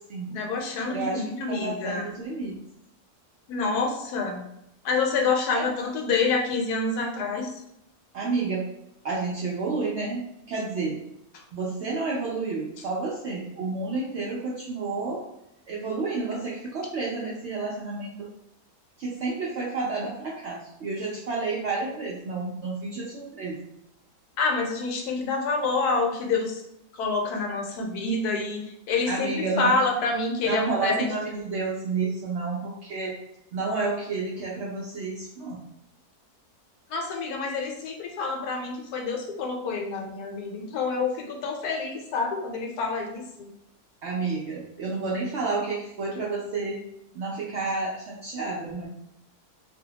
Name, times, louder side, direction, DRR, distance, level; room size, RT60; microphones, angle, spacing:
voice 1, 0.3-2.1 3.5-4.4 4.8-7.6 24.4-26.6 26.9-31.1 36.9-43.5, left 3 dB, 80° left, 1 dB, 1.1 m, -27 dB
voice 2, 0.9-1.2 1.5-2.6 5.5-5.7 8.1-8.7 9.0-11.0 11.5-15.2 15.7-18.3 19.0-23.6 29.1-29.8 30.4-33.2 33.5-35.6 44.0-46.8 47.1-48.9, right 3 dB, 70° right, -5 dB, 0.6 m, -30 dB
2.6 x 2.1 x 2.7 m, 0.81 s
omnidirectional pair, 1.6 m